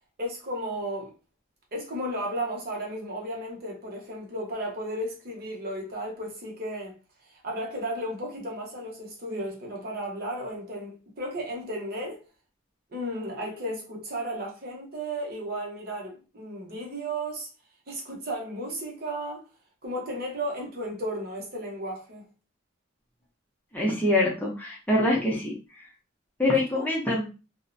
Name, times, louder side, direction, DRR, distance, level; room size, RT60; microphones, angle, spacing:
voice 1, 0.2-1.1 1.7-7.0 7.2-12.2 12.9-17.5 17.9-19.4 19.8-22.2 26.5-26.9, right 1 dB, 45° right, 0.8 m, -34 dB
voice 2, 23.7-25.5 26.4-27.3, left 1 dB, 10° left, 0.5 m, -24 dB
2.4 x 2.0 x 2.5 m
head